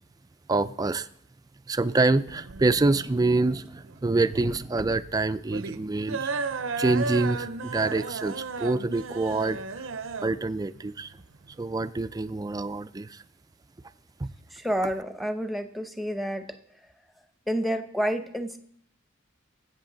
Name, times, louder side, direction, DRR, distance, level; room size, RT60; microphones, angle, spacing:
voice 1, 0.5-1.1 1.7-6.3 6.8-9.9 10.2-11.2 11.6-13.2 14.2-14.3, right 3 dB, 20° right, 13 dB, 0.4 m, -26 dB
sound 1, 2.3-12.3, right 4 dB, 70° right, 0.6 m, -35 dB
voice 2, 14.5-16.5 17.5-18.6, equal, ahead, 8 dB, 0.8 m, -29 dB
19.5 x 8.2 x 3.9 m, 0.68 s
head